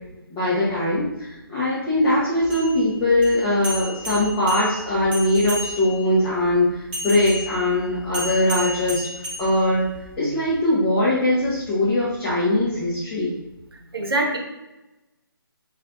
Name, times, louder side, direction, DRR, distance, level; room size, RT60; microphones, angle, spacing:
voice 1, 0.3-9.0 9.4-9.8 10.2-13.3, left 1 dB, 10° left, -10 dB, 0.6 m, -21 dB
sound 1, 2.4-6.1 6.9-10.1, equal, 25° right, 1.2 m, -33 dB
voice 2, 13.7-14.4, right 2 dB, 85° right, 2 dB, 0.8 m, -25 dB
5.7 x 2.4 x 2.5 m, 1.0 s
figure-of-eight pair, 155°, 12 cm